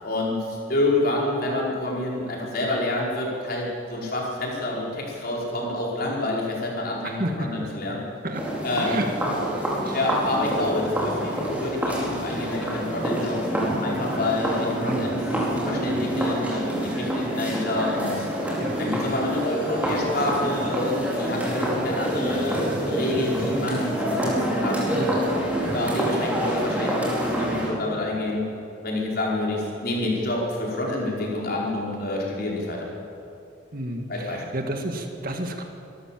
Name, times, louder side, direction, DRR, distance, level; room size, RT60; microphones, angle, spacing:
voice 1, 0.0-8.0 8.6-8.9 9.9-15.2 15.5-18.3 18.8-24.8 25.6-28.5 28.8-32.9 34.1-34.4, left 2 dB, 50° left, -3 dB, 5.0 m, -28 dB
voice 2, 7.0-7.7 8.2-8.4 8.8-9.5 9.8-10.0 14.8-15.2 18.6-18.8 24.9-25.2 33.7-35.6, right 1 dB, 45° right, 4 dB, 1.9 m, -31 dB
sound 1, 8.3-27.7, equal, 10° right, 4.5 m, -27 dB
25.5 x 13.5 x 7.6 m, 2.6 s
head